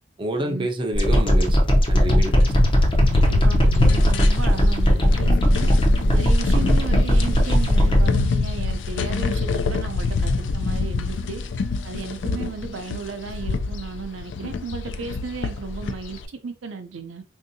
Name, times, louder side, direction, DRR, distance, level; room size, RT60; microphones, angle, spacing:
voice 1, 0.2-1.6 1.9-2.5, right 1 dB, 25° right, 0.5 m, -27 dB
sound 1, 0.9-8.1, equal, 25° left, 0.6 m, -18 dB
sound 2, 2.1-16.3, left 4 dB, 65° left, 0.4 m, -26 dB
voice 2, 3.1-5.8 6.1-11.4 11.8-17.2, right 4 dB, 80° right, 0.5 m, -34 dB
3.5 x 2.7 x 2.7 m
head